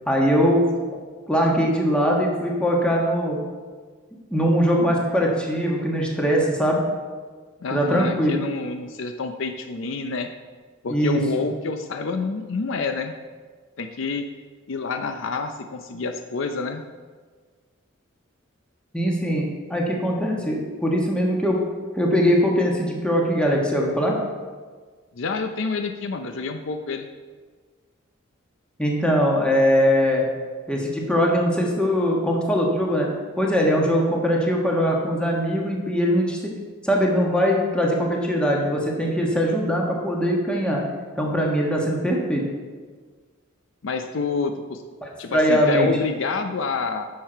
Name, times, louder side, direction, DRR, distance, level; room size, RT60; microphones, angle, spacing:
voice 1, 0.1-0.6 1.3-3.4 4.3-6.8 7.7-8.4 10.9-11.2 18.9-19.4 19.7-21.6 22.0-24.1 28.8-30.2 30.7-33.1 33.4-36.5 36.8-40.8 41.1-42.4 45.0-45.9, equal, 5° left, -2 dB, 1.4 m, -21 dB
voice 2, 7.6-10.3 10.8-13.1 13.8-14.3 14.7-16.8 25.1-27.1 43.8-44.8 45.2-47.1, left 4 dB, 65° left, 7 dB, 0.5 m, -28 dB
10.0 x 6.6 x 4.5 m, 1.5 s
head